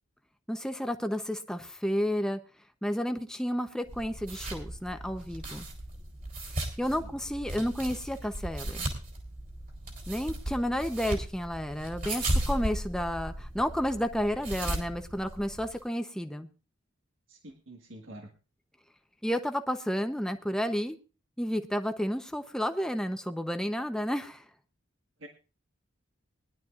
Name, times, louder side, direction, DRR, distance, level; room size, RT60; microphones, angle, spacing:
voice 1, 0.5-2.4 2.8-5.7 6.8-8.9 10.1-16.5 19.2-21.0 21.4-24.4, equal, 5° left, 7 dB, 0.8 m, -31 dB
sound 1, 3.9-15.8, right 1 dB, 45° right, 3.6 m, -36 dB
voice 2, 17.3-18.3 25.2-25.3, right 1 dB, 75° right, 2 dB, 1.7 m, -47 dB
21.5 x 11.5 x 2.5 m, 0.32 s
head